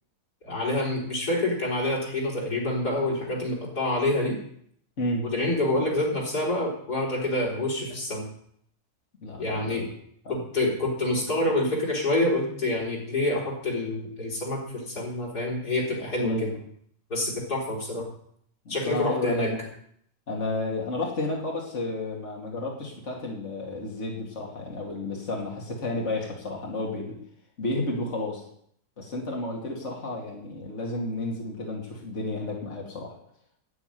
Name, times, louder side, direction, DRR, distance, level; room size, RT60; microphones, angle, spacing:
voice 1, 0.4-4.4 5.2-8.3 9.4-9.9 10.3-16.5 17.1-18.0 18.7-19.5, left 1 dB, 85° left, -3 dB, 4.7 m, -27 dB
voice 2, 9.2-9.9 10.2-10.4 16.2-16.5 18.6-19.6 20.3-27.2 27.6-28.4 29.0-33.1, left 2 dB, 50° left, -2 dB, 2.8 m, -31 dB
9.6 x 8.9 x 9.2 m, 0.67 s
omnidirectional pair, 1.6 m